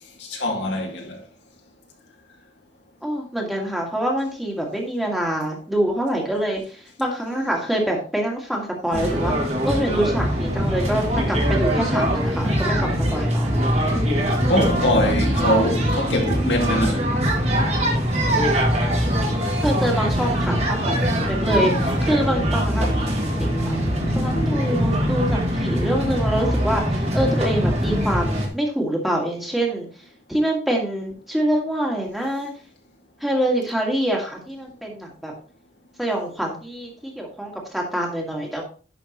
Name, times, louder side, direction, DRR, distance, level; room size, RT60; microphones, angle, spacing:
voice 1, 0.2-1.2 14.5-17.1 23.4-25.3, left 1 dB, 70° left, 1.8 m, -25 dB
voice 2, 3.0-9.3 9.6-13.5 19.6-20.9 21.2-23.7 24.2-29.9 30.3-32.5 33.2-35.3 36.0-38.6, right 1 dB, ahead, 1.8 m, -25 dB
sound 1, 8.9-28.5, equal, 35° right, 1.9 m, -22 dB
11.0 x 5.8 x 3.0 m
head